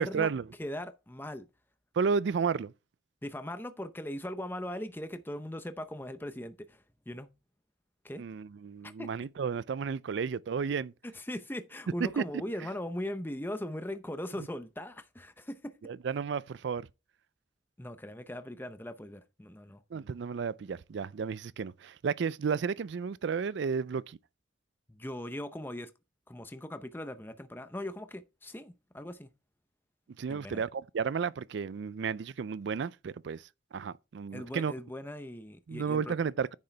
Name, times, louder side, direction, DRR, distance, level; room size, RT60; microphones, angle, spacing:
voice 1, 0.0-0.4 2.0-2.7 8.2-10.9 12.0-12.2 15.8-16.9 19.9-24.2 30.2-33.4 33.7-34.7 35.7-36.5, right 6 dB, 65° right, 0.4 m, -32 dB
voice 2, 0.6-1.5 3.2-6.8 7.1-7.3 8.0-8.2 9.0-9.1 11.1-15.8 17.8-19.8 24.9-25.9 26.3-29.3 30.3-30.6 34.3-36.1, left 1 dB, 10° left, 0.7 m, -39 dB
9.8 x 6.6 x 3.3 m
head